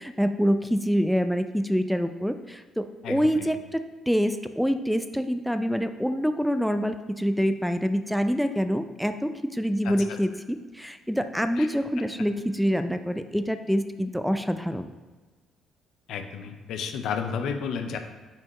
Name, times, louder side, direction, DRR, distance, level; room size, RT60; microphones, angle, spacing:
voice 1, 0.0-14.9, equal, ahead, 8 dB, 0.5 m, -26 dB
voice 2, 3.0-3.5 9.8-9.9 11.6-11.7 16.1-18.0, left 6 dB, 70° left, 6 dB, 0.6 m, -32 dB
8.8 x 4.3 x 3.1 m, 1.3 s
hypercardioid pair, 50°, 0 cm